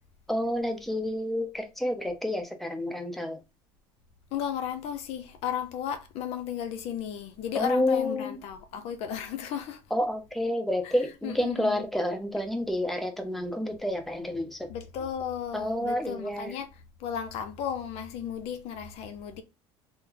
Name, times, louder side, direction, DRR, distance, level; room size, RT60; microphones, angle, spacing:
voice 1, 0.3-3.4 7.5-8.4 9.9-14.7 15.5-16.5, left 1 dB, ahead, 0.7 m, -29 dB
voice 2, 4.3-9.8 11.2-11.8 14.7-16.7 17.0-19.4, left 8 dB, 60° left, 0.5 m, -34 dB
3.2 x 2.0 x 3.7 m
supercardioid pair, 95°, 12 cm